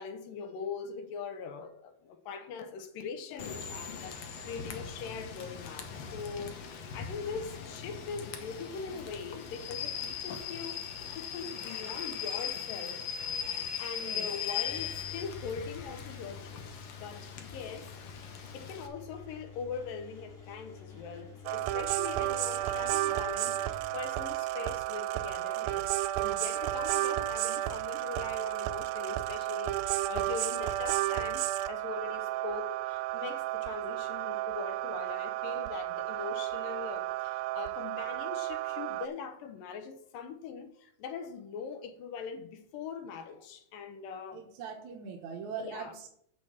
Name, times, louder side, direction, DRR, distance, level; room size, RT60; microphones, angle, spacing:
voice 1, 0.0-10.8 11.1-13.1 13.3-25.9 26.2-44.4 45.6-45.9, left 5 dB, 80° left, 2.7 m, -42 dB
Rain / Train, 3.4-18.9, left 7 dB, 65° left, 1.7 m, -39 dB
voice 2, 14.0-14.3 44.3-46.1, right 6 dB, 65° right, 2.2 m, -41 dB
Engine, 14.7-24.1, left 6 dB, 45° left, 3.0 m, -49 dB
sound 1, 21.5-39.1, right 15 dB, 90° right, 2.4 m, -32 dB
8.0 x 6.1 x 7.1 m
omnidirectional pair, 4.1 m